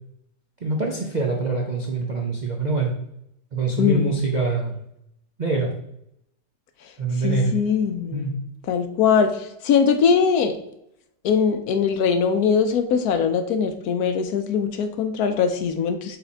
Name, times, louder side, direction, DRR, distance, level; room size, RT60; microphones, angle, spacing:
voice 1, 0.6-2.9 3.5-4.8 5.4-5.7 7.0-7.5 8.1-8.3, right 3 dB, 60° right, 1 dB, 0.4 m, -24 dB
voice 2, 3.8-4.2 7.2-8.3 8.7-10.6 11.2-16.2, left 6 dB, 70° left, 8 dB, 1.0 m, -21 dB
5.6 x 4.0 x 4.3 m, 0.77 s
omnidirectional pair, 1.9 m